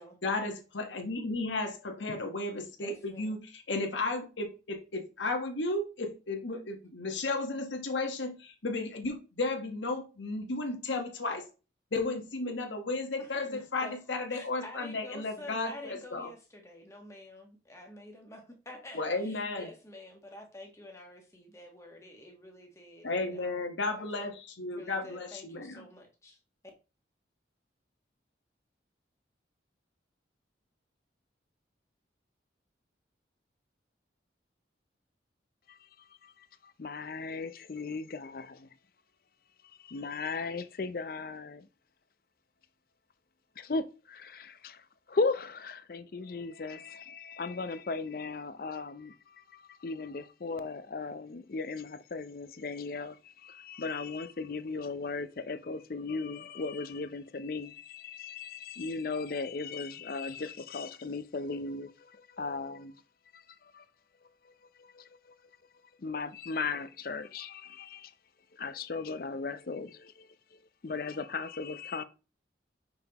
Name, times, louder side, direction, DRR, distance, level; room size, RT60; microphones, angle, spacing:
voice 1, 0.2-11.4 11.9-16.3 18.9-19.7 23.0-25.9, left 2 dB, 85° left, 1.3 m, -34 dB
voice 2, 2.8-3.5 13.2-14.0 14.3-23.7 23.9-24.3 24.7-26.4, left 1 dB, 15° left, 1.3 m, -49 dB
voice 3, 36.8-38.7 39.8-41.6 43.6-44.8 45.1-49.1 49.5-53.2 53.4-61.9 62.4-62.9 63.7-63.8 65.0-65.1 66.0-68.1 68.6-70.3 70.8-72.0, left 4 dB, 50° left, 0.5 m, -36 dB
5.7 x 5.7 x 2.9 m
head